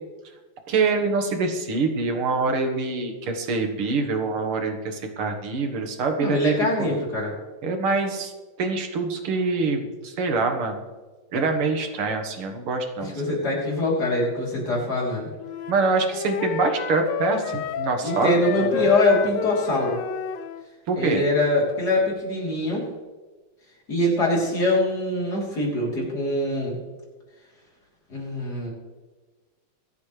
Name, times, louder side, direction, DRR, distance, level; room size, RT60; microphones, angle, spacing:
voice 1, 0.7-7.0 7.6-8.3 8.6-10.8 11.3-13.1 15.7-18.9 20.9-21.2, right 3 dB, 85° right, 4 dB, 2.4 m, -25 dB
voice 2, 6.2-7.3 13.0-15.3 18.0-20.0 21.0-22.9 23.9-26.8 28.1-28.7, left 1 dB, 45° left, -3 dB, 4.0 m, -23 dB
Wind instrument woodwind instrument, 15.4-20.7, left 9 dB, 70° left, 1.2 m, -30 dB
24.5 x 8.5 x 3.3 m, 1.3 s
omnidirectional pair, 2.3 m